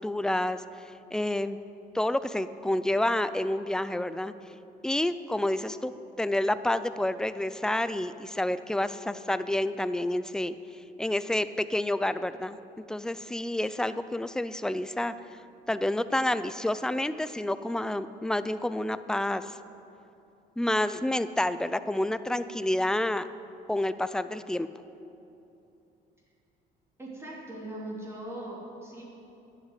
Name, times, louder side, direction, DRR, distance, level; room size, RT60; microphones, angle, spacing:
voice 1, 0.0-1.6 1.9-4.3 4.8-5.9 6.2-15.1 15.7-19.6 20.6-23.3 23.7-24.7, left 1 dB, 5° left, 13 dB, 0.4 m, -29 dB
voice 2, 27.0-29.0, right 1 dB, 15° right, -5 dB, 3.0 m, -40 dB
11.0 x 8.2 x 8.2 m, 2.8 s
cardioid pair, 110°, 17 cm